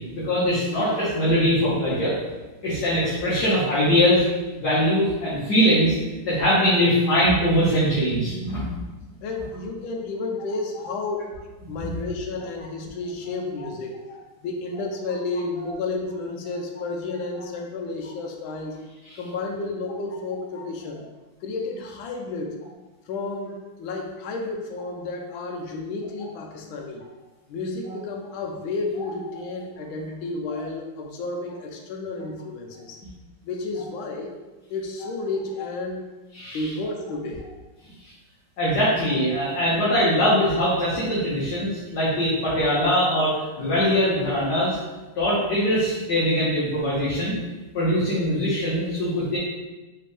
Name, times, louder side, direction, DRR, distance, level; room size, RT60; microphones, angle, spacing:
voice 1, 0.1-2.1 2.6-4.2 4.6-5.9 6.2-8.6 10.8-10.9 11.8-11.9 15.6-15.7 30.5-30.6 36.3-36.7 38.6-44.8 45.2-47.3 47.7-49.4, equal, 60° left, -9 dB, 1.6 m, -22 dB
voice 2, 9.2-11.3 11.7-14.0 14.4-18.8 19.1-21.0 21.4-22.6 23.1-27.0 27.5-33.0 33.4-34.3 34.7-36.1 36.5-37.5, left 3 dB, 80° left, 2 dB, 1.4 m, -31 dB
4.1 x 3.4 x 3.3 m, 1.2 s
omnidirectional pair, 2.2 m